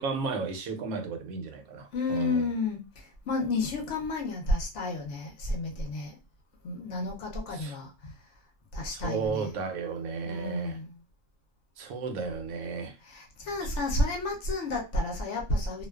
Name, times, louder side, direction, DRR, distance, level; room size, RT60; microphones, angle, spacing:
voice 1, 0.0-2.4 7.5-7.8 9.0-10.8 11.8-12.9, right 4 dB, 80° right, 1.0 m, -33 dB
voice 2, 1.9-6.2 6.6-8.1 8.7-9.5 10.2-11.0 13.0-15.9, left 2 dB, 65° left, 0.8 m, -31 dB
2.4 x 2.2 x 2.2 m
omnidirectional pair, 1.5 m